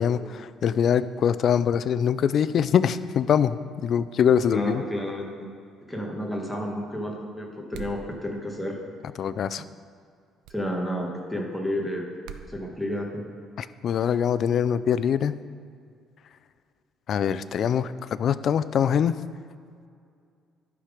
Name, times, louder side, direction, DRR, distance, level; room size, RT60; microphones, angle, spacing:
voice 1, 0.0-4.8 9.2-9.6 13.6-15.3 17.1-19.2, left 8 dB, 45° left, 14 dB, 0.3 m, -23 dB
voice 2, 4.5-5.5 5.9-8.8 10.5-12.1 12.5-13.2, equal, 5° left, 0 dB, 1.3 m, -31 dB
sound 1, 7.7-8.1 10.4-10.6 12.2-12.5, right 9 dB, 90° right, 0.5 m, -41 dB
12.0 x 5.9 x 5.0 m, 2.3 s
cardioid pair, 145°, 0 cm